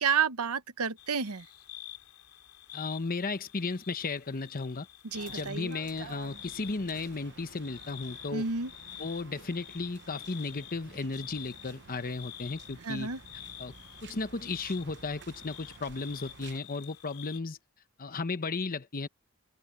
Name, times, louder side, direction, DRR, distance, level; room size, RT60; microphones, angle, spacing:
voice 1, 0.0-1.5 5.1-5.8 8.3-8.7 12.8-13.2, right 6 dB, 80° right, 1.0 m, -30 dB
sound 1, 1.0-17.4, left 13 dB, 75° left, 3.1 m, -48 dB
voice 2, 2.7-4.9 5.3-8.5 9.0-13.1 13.6-13.7 14.0-17.6 18.0-19.1, left 3 dB, 40° left, 1.0 m, -35 dB
sound 2, 5.1-16.6, right 5 dB, 55° right, 1.0 m, -52 dB
open air
head